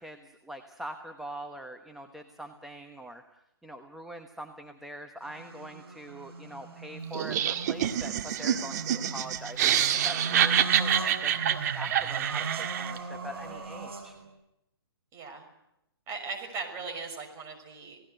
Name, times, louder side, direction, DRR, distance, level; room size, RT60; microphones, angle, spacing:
voice 1, 0.0-3.2 3.6-14.2, right 1 dB, ahead, 3 dB, 1.1 m, -43 dB
sound 1, 5.2-14.3, right 3 dB, 70° right, 6.9 m, -38 dB
Laughter, 7.1-13.0, right 10 dB, 40° right, 1.9 m, -27 dB
voice 2, 15.1-15.5 16.1-18.0, right 4 dB, 20° right, 3 dB, 6.0 m, -38 dB
28.5 x 18.5 x 8.0 m, 0.85 s
hypercardioid pair, 145°, 13 cm